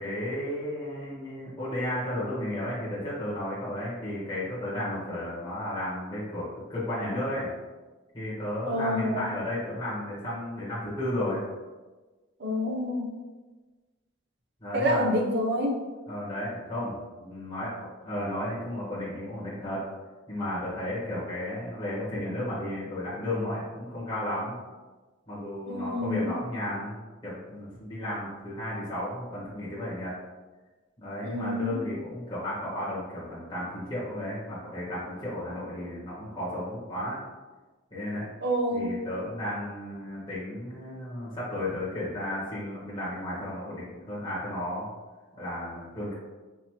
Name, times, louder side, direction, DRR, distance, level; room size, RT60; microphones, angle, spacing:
voice 1, 0.0-7.5 8.1-11.4 14.6-15.1 16.1-19.8 20.3-24.6 25.3-27.0 27.2-30.1 31.0-37.2 37.9-38.3 38.7-44.9 45.4-46.1, left 1 dB, 25° left, -10 dB, 1.2 m, -33 dB
voice 2, 8.7-9.3 12.4-13.2 14.7-15.8 25.7-26.3 31.2-31.8 38.4-38.9, equal, 55° right, 0 dB, 0.6 m, -28 dB
4.6 x 2.8 x 2.9 m, 1.2 s
head